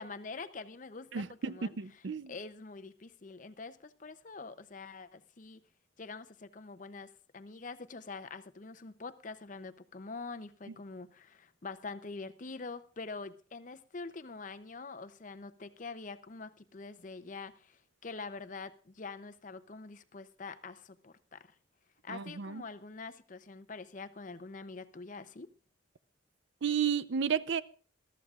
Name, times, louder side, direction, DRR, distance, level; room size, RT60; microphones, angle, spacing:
voice 1, 0.0-2.0 2.3-5.6 6.0-21.5 22.0-25.5, left 4 dB, 40° left, 0.6 m, -45 dB
voice 2, 1.1-2.3 22.1-22.6 26.6-27.6, right 7 dB, 65° right, 0.5 m, -32 dB
21.0 x 13.0 x 2.4 m
head